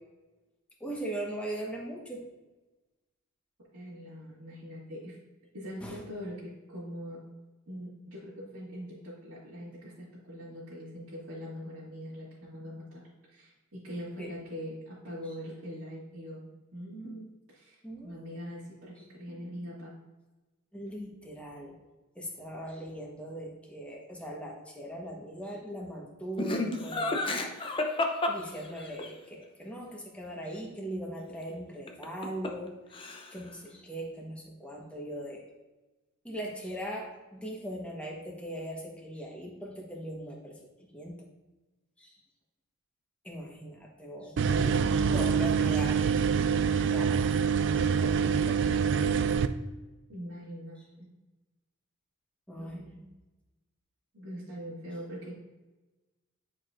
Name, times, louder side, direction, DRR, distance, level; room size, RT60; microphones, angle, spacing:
voice 1, 0.8-2.3 5.8-6.0 14.2-14.4 17.8-18.4 20.7-21.7 22.1-27.6 28.3-32.8 33.3-35.4 36.2-41.3 42.0-42.2 43.2-44.8 45.1-46.0 46.9-47.3 48.0-48.8 52.5-53.1, right 1 dB, 5° left, -2 dB, 1.2 m, -40 dB
voice 2, 3.7-5.2 5.5-7.2 7.7-13.0 13.3-13.5 13.8-16.5 16.7-17.8 18.0-19.9 50.1-51.1 52.6-52.9 54.1-55.3, equal, 75° right, -10 dB, 2.1 m, -42 dB
Laughter, 26.4-29.1 31.9-32.7 32.9-33.5, left 2 dB, 25° left, 0.6 m, -31 dB
sound 1, 44.4-49.5, right 6 dB, 55° right, 0.4 m, -25 dB
10.5 x 4.7 x 2.6 m, 1.1 s
head